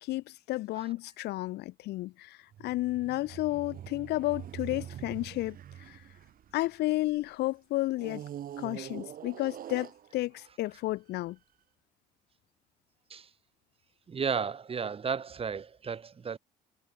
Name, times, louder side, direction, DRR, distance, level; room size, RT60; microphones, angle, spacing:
voice 1, 0.0-5.6 5.9-6.0 6.5-8.2 8.6-11.4, left 18 dB, 75° left, 0.8 m, -32 dB
sound 1, 2.5-7.2 8.0-10.5 11.2-11.3, right 10 dB, 55° right, 6.0 m, -44 dB
voice 2, 14.1-16.4, right 6 dB, 35° right, 4.9 m, -33 dB
cardioid pair, 110°, 17 cm